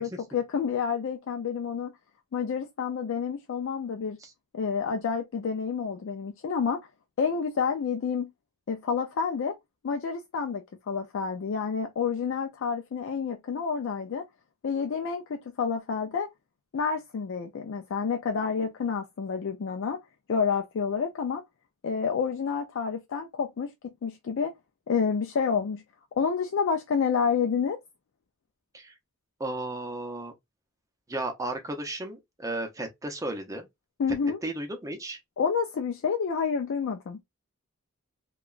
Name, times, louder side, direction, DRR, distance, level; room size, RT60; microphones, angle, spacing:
voice 1, 0.0-1.9 2.3-4.2 4.5-6.8 7.2-8.3 8.7-9.5 9.8-14.2 14.6-16.3 16.7-20.0 20.3-21.4 21.8-24.5 24.9-25.8 26.2-27.8 34.0-34.4 35.4-37.2, left 6 dB, 65° left, 0.4 m, -29 dB
voice 2, 29.4-30.3 31.1-33.7 34.4-35.2, right 2 dB, 15° right, 0.6 m, -34 dB
2.8 x 2.2 x 2.4 m
head